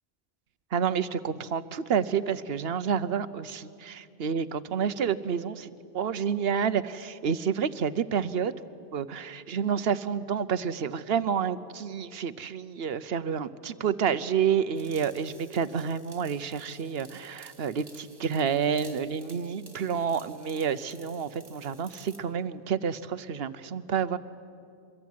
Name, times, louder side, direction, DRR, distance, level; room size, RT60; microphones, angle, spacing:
voice 1, 0.7-8.6 8.9-24.2, right 7 dB, 60° right, 14 dB, 1.0 m, -29 dB
sound 1, 14.8-22.3, right 2 dB, 45° right, 2.3 m, -54 dB
25.5 x 21.5 x 9.4 m, 2.5 s
omnidirectional pair, 1.2 m